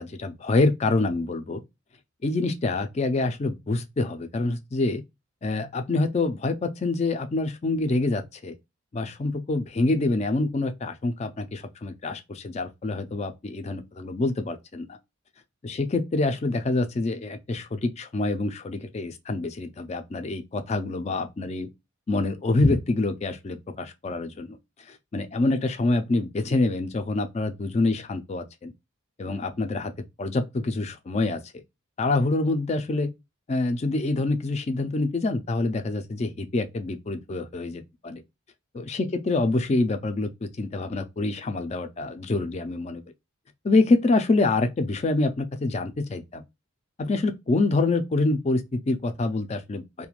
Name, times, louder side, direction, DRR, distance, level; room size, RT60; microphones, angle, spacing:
voice 1, 0.0-1.6 2.2-5.0 5.4-8.6 8.9-15.0 15.6-21.7 22.1-24.6 24.9-28.7 29.2-29.9 30.2-31.4 32.0-33.1 33.5-38.2 38.7-43.0 43.6-46.4 47.0-50.1, left 2 dB, 30° left, 0.3 m, -26 dB
2.4 x 2.1 x 2.9 m
head